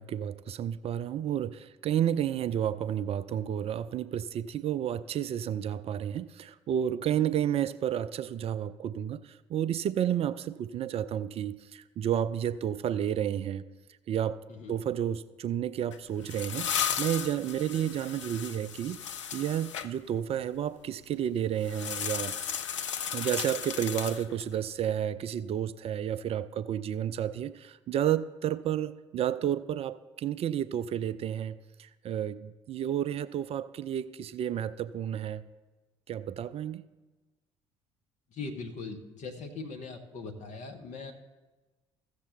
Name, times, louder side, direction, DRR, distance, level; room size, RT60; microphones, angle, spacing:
voice 1, 0.0-13.6 14.1-14.4 14.7-19.0 19.3-22.3 23.1-35.4 36.1-36.8, right 10 dB, 40° right, 16 dB, 0.4 m, -31 dB
voice 2, 7.1-7.4 14.5-14.8 38.3-41.1, left 4 dB, 50° left, 4 dB, 1.3 m, -41 dB
sound 1, 15.9-19.9 21.6-24.6, left 8 dB, 80° left, 0.4 m, -35 dB
14.5 x 6.8 x 4.0 m, 1.2 s
figure-of-eight pair, 50°, 15 cm